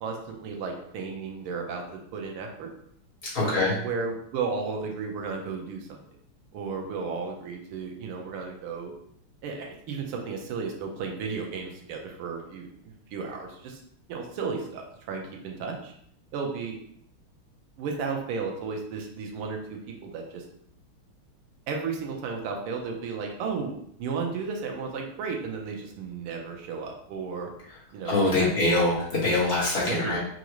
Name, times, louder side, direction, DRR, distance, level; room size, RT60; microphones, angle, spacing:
voice 1, 0.0-2.7 3.4-6.0 6.5-8.9 9.4-13.8 14.1-15.9 16.3-16.8 17.8-20.4 21.7-27.5 27.9-28.6 29.9-30.1, right 5 dB, 90° right, 2 dB, 1.6 m, -34 dB
voice 2, 3.2-3.8 28.0-30.2, left 2 dB, 30° left, -7 dB, 1.5 m, -24 dB
5.0 x 2.5 x 3.0 m, 0.68 s
omnidirectional pair, 2.3 m